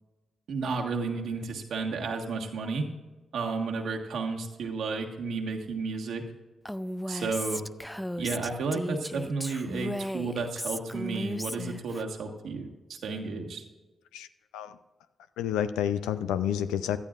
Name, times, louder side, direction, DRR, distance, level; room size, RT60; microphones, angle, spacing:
voice 1, 0.5-2.8 3.3-6.2 7.1-7.6 8.2-13.6, right 4 dB, 75° right, 2 dB, 1.5 m, -32 dB
Female speech woman speaking, 6.7-12.0, equal, 5° left, 0.5 m, -35 dB
voice 2, 15.4-17.0, left 9 dB, 90° left, 12 dB, 0.4 m, -29 dB
17.0 x 12.0 x 2.5 m, 1.2 s
hypercardioid pair, 40°, 0 cm